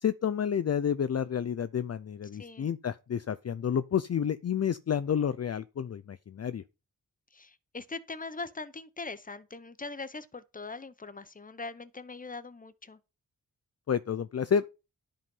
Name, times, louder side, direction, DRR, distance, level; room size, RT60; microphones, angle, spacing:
voice 1, 0.0-6.6 13.9-14.7, left 8 dB, 45° left, 0.5 m, -30 dB
voice 2, 2.4-2.7 7.3-13.0, left 3 dB, 25° left, 0.9 m, -41 dB
11.5 x 5.3 x 5.4 m
wide cardioid pair, 90°, 35 cm